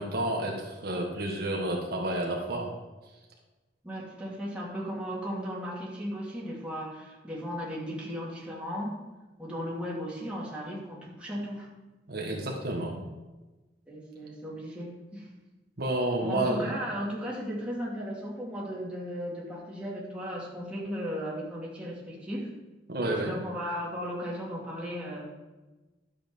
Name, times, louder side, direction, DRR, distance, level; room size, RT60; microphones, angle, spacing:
voice 1, 0.0-2.7 12.1-13.0 15.8-16.7 22.9-23.3, right 1 dB, 60° right, 0 dB, 1.5 m, -30 dB
voice 2, 3.8-9.0 9.4-11.7 13.9-15.3 16.2-22.5 23.1-25.3, equal, 5° right, -5 dB, 2.6 m, -36 dB
12.0 x 7.2 x 5.4 m, 1.2 s
head